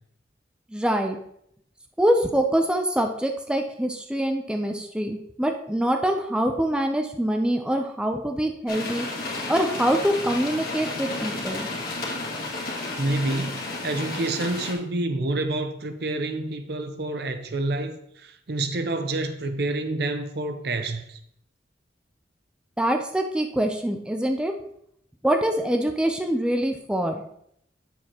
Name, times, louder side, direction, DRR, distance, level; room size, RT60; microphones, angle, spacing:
voice 1, 0.7-1.2 2.0-9.1 9.5-11.7 22.8-24.5 25.2-27.2, right 1 dB, 5° right, 0.5 m, -24 dB
sound 1, 8.7-14.7, left 2 dB, 55° left, 2.1 m, -32 dB
voice 2, 13.0-21.2, right 2 dB, 65° right, 0.7 m, -28 dB
8.4 x 7.2 x 2.9 m
head